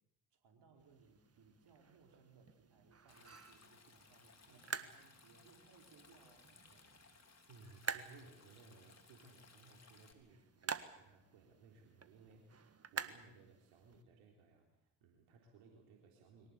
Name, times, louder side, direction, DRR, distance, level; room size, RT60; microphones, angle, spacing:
voice 1, 0.3-6.9, right 5 dB, 55° right, 3 dB, 4.7 m, -66 dB
sound 1, 0.8-14.0, right 6 dB, 30° right, 1.7 m, -50 dB
Stream, 3.1-10.1, left 4 dB, 30° left, 3.8 m, -64 dB
voice 2, 7.5-16.5, right 4 dB, 70° right, 1 dB, 3.7 m, -62 dB
23.5 x 18.5 x 8.4 m, 0.81 s
hypercardioid pair, 55°, 49 cm